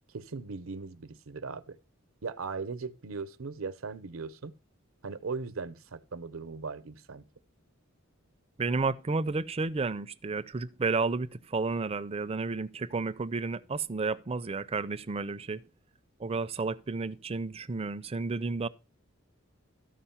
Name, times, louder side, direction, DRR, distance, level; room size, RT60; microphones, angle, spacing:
voice 1, 0.1-1.8 2.2-4.5 5.0-7.2, right 4 dB, 80° right, 0.8 m, -38 dB
voice 2, 8.6-15.6 16.2-18.7, right 4 dB, 30° right, 0.5 m, -31 dB
13.5 x 5.1 x 5.7 m
head